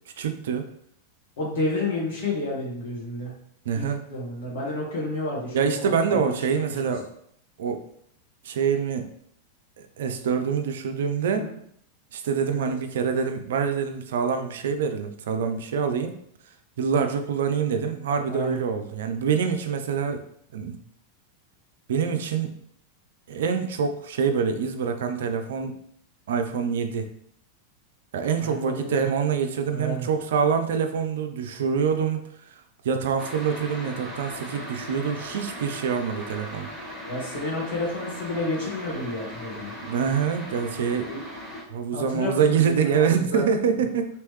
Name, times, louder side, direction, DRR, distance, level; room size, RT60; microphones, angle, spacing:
voice 1, 0.2-0.7 3.7-4.0 5.5-7.1 7.6-7.8 8.4-9.0 10.0-11.5 12.1-16.2 16.8-20.2 20.5-20.8 21.9-22.6 23.3-25.8 26.3-27.1 28.1-32.2 32.8-36.7 39.8-41.1 41.7-44.1, right 6 dB, 60° right, 6 dB, 0.4 m, -25 dB
voice 2, 1.4-3.3 3.7-6.7 11.3-11.5 12.5-12.7 18.3-18.6 28.4-29.1 29.7-30.1 37.0-39.7 41.1-41.2 41.9-43.5, left 2 dB, 55° left, -3 dB, 1.4 m, -31 dB
sound 1, 33.2-41.6, equal, 10° left, 1.2 m, -38 dB
3.1 x 3.1 x 3.0 m, 0.68 s
figure-of-eight pair, 90°, 0 cm